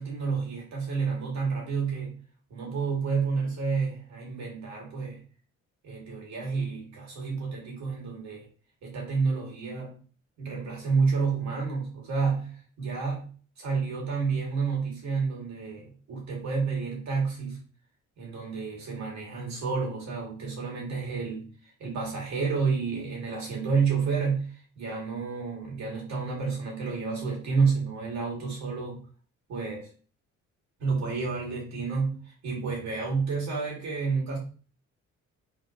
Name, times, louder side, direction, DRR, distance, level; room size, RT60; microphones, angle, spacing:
voice 1, 0.0-2.2 2.5-5.2 5.8-8.5 8.8-10.0 10.4-13.3 13.6-17.6 18.2-21.5 21.8-29.0 29.5-29.9 30.8-34.4, right 5 dB, 65° right, -2 dB, 2.2 m, -30 dB
4.0 x 3.7 x 3.0 m, 0.39 s
cardioid pair, 90°, 30 cm